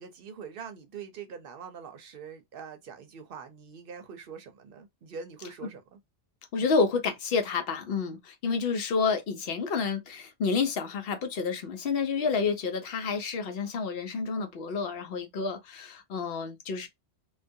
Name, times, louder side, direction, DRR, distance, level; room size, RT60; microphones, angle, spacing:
voice 1, 0.0-6.0, right 6 dB, 60° right, 0.7 m, -44 dB
voice 2, 6.5-16.9, left 5 dB, 65° left, 0.8 m, -29 dB
2.3 x 2.2 x 2.6 m
omnidirectional pair, 1.1 m